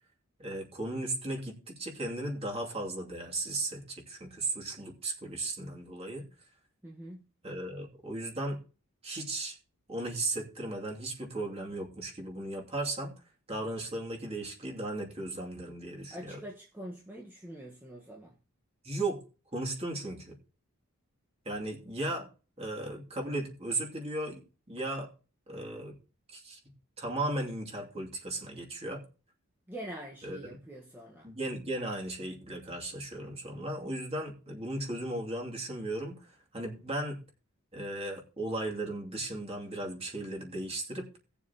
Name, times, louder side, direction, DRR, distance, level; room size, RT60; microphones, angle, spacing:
voice 1, 0.4-6.3 7.4-8.6 9.0-9.6 9.9-13.1 13.5-16.4 18.8-19.2 19.5-20.3 21.4-22.3 22.6-25.1 25.5-26.0 26.3-26.6 27.0-29.0 30.2-30.4 31.2-37.2 37.7-41.1, right 2 dB, 25° right, 2.6 m, -36 dB
voice 2, 6.8-7.3 16.1-18.3 29.7-31.3, right 1 dB, 10° right, 1.3 m, -44 dB
18.5 x 7.1 x 2.9 m
head